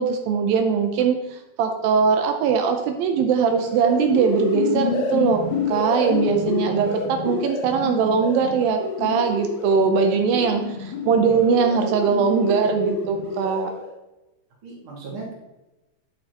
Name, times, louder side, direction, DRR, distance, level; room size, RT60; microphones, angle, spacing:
voice 1, 0.0-5.4 5.7-13.7, right 6 dB, 85° right, 4 dB, 2.5 m, -21 dB
sound 1, 3.4-13.9, left 5 dB, 70° left, 1.9 m, -29 dB
voice 2, 11.0-11.4 14.6-15.3, right 3 dB, 40° right, -4 dB, 2.6 m, -37 dB
9.8 x 6.3 x 2.9 m, 0.99 s
omnidirectional pair, 4.0 m